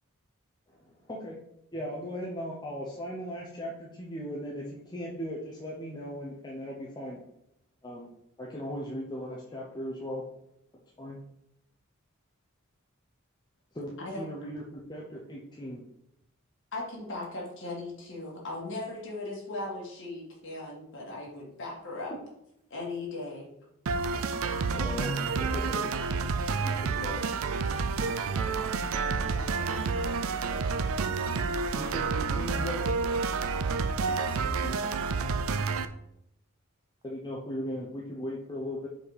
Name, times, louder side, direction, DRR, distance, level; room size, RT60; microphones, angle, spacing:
voice 1, 0.7-1.4 1.7-7.2 7.8-8.1 8.4-10.2 11.0-11.2 13.7-15.8 24.7-25.9 26.6-27.2 31.8-33.0 34.4-34.8 37.0-38.9, equal, 20° left, -3 dB, 0.8 m, -38 dB
voice 2, 16.7-22.1 22.7-23.5, left 2 dB, 60° left, -3 dB, 2.1 m, -38 dB
sound 1, 23.9-35.9, right 4 dB, 75° right, 0.4 m, -29 dB
voice 3, 28.5-30.4 34.0-34.5, left 1 dB, 25° right, 0 dB, 1.0 m, -47 dB
5.1 x 4.2 x 5.0 m, 0.80 s
head